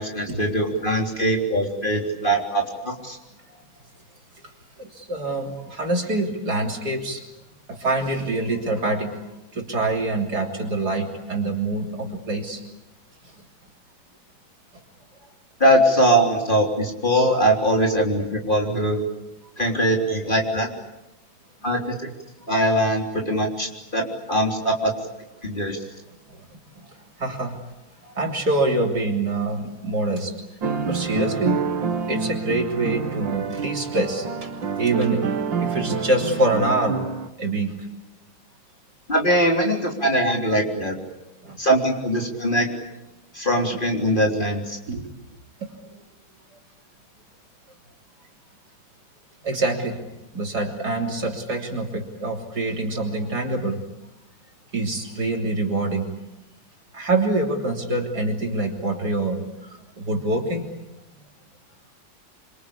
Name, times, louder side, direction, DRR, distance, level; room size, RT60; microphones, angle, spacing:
voice 1, 0.0-3.2 15.6-19.0 19.6-20.7 21.6-22.1 22.5-24.9 25.4-25.8 39.1-41.0 41.6-42.7 43.3-44.8, right 1 dB, 25° left, 1 dB, 3.8 m, -21 dB
voice 2, 4.8-7.2 7.7-9.2 9.5-12.6 26.3-26.4 27.2-27.6 28.0-30.3 30.9-31.6 32.1-35.2 35.6-37.0 37.4-37.7 41.4-41.6 44.9-45.0 49.4-50.0 50.3-53.8 54.7-56.1 56.9-59.5 60.0-60.7, right 2 dB, 50° right, 2 dB, 3.9 m, -25 dB
sound 1, 30.6-37.3, right 5 dB, 65° right, 2.3 m, -27 dB
27.0 x 25.5 x 8.5 m, 0.94 s
omnidirectional pair, 2.2 m